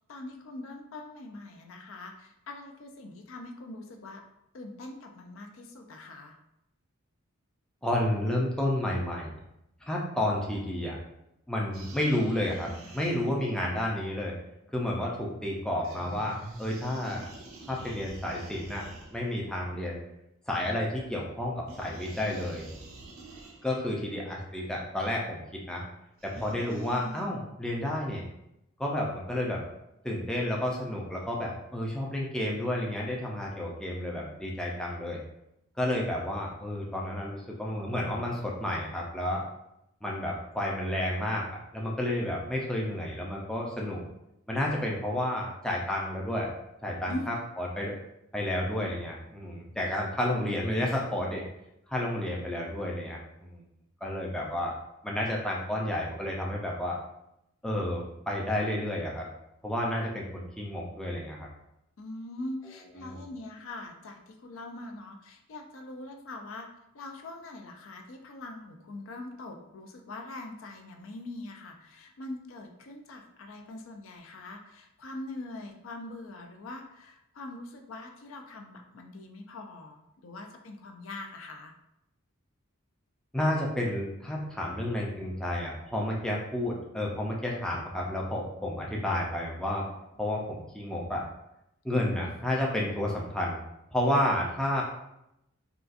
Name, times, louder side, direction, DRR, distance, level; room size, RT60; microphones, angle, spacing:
voice 1, 0.1-4.2 4.5-6.4 47.1-47.2 62.0-66.7 66.9-81.7 91.9-92.0, left 2 dB, 65° left, 4 dB, 0.4 m, -42 dB
voice 2, 7.8-9.3 9.9-11.0 11.5-14.3 14.7-17.3 17.7-18.9 19.1-20.0 20.5-22.6 23.6-25.8 26.2-28.3 28.8-29.6 30.0-35.2 35.8-39.4 40.0-44.0 44.5-46.5 46.8-47.9 48.3-51.4 51.9-53.6 54.0-54.8 55.0-57.0 57.6-59.3 59.6-61.5 63.0-63.2 83.3-89.9 90.2-91.2 91.8-93.6 93.9-94.8, left 1 dB, 5° left, -3 dB, 0.4 m, -31 dB
sound 1, 11.7-13.6 15.8-19.5 21.7-23.9 26.2-27.2, right 2 dB, 75° right, 0.6 m, -46 dB
3.8 x 2.3 x 2.4 m, 0.83 s
head